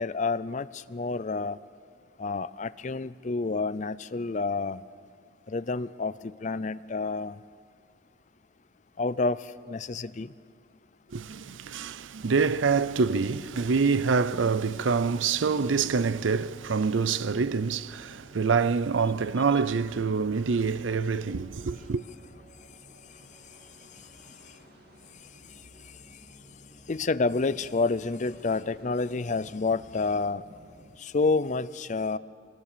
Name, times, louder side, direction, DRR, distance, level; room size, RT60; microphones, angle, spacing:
voice 1, 0.0-1.6 2.2-4.8 5.5-7.4 9.0-10.3 26.9-30.4 31.0-32.2, left 3 dB, 40° left, 0.5 m, -29 dB
voice 2, 11.1-22.0, right 5 dB, 80° right, 0.6 m, -26 dB
sound 1, 12.2-31.0, right 1 dB, 55° right, 2.2 m, -54 dB
25.5 x 20.0 x 6.8 m
head